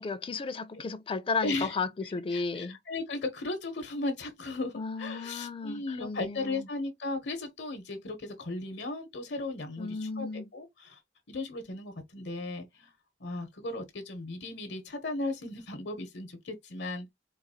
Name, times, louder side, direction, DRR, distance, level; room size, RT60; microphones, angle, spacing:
voice 1, 0.0-2.8 4.7-6.7 9.8-10.5, left 4 dB, 30° left, 0.4 m, -34 dB
voice 2, 1.4-1.8 2.0-11.0 11.3-12.9 13.2-17.1, left 2 dB, 80° left, 0.9 m, -36 dB
3.9 x 2.3 x 2.7 m
head